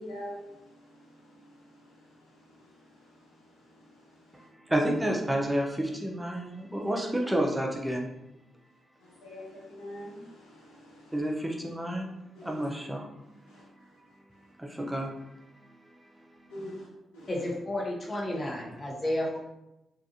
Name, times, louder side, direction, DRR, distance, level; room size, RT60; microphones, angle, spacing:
voice 1, 0.0-2.0 3.0-3.1 3.7-3.9 9.0-11.1 12.3-12.6 13.5-13.6 16.5-16.9 17.1-17.3, equal, 85° left, -7 dB, 0.9 m, -44 dB
voice 2, 4.5-8.1 11.1-12.1 12.4-13.1 14.6-15.1, right 1 dB, 15° right, 0 dB, 0.6 m, -30 dB
voice 3, 17.3-19.4, left 1 dB, 40° left, -2 dB, 0.9 m, -31 dB
3.5 x 2.4 x 2.7 m, 0.94 s
hypercardioid pair, 40°, 0 cm